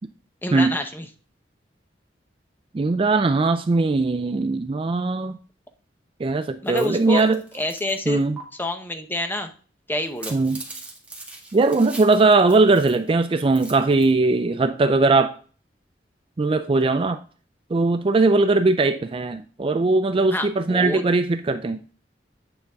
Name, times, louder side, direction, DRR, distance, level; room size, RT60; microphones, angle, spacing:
voice 1, 0.4-1.1 6.6-7.2 7.5-8.2 8.6-9.5 9.9-10.4 20.3-21.0, left 1 dB, 10° left, 6 dB, 0.8 m, -27 dB
voice 2, 2.7-5.4 6.2-7.4 8.1-8.4 10.3-10.6 11.5-15.3 16.4-17.2 17.7-21.8, right 3 dB, 30° right, 10 dB, 0.4 m, -20 dB
sound 1, 6.6-8.0 8.4-8.5 10.0-13.1 13.4-14.1, right 3 dB, 10° right, 1.7 m, -41 dB
9.0 x 5.2 x 3.5 m, 0.40 s
head